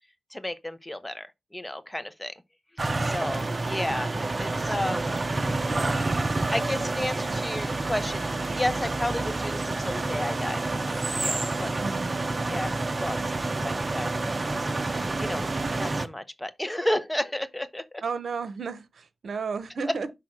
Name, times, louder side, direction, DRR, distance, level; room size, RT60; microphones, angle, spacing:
voice 1, 0.3-1.3 1.5-2.3 3.0-4.1 4.4-5.1 6.5-8.2 8.5-10.6 11.2-11.7 12.5-12.7 13.0-13.3 13.6-14.5 14.9-15.4 15.8-17.8, left 1 dB, 10° left, 0.9 m, -32 dB
sound 1, 2.8-16.1, right 2 dB, 35° right, 0.8 m, -28 dB
voice 2, 11.8-12.3 18.0-20.1, right 5 dB, 75° right, 0.9 m, -33 dB
6.1 x 3.6 x 6.1 m
cardioid pair, 75°, 0 cm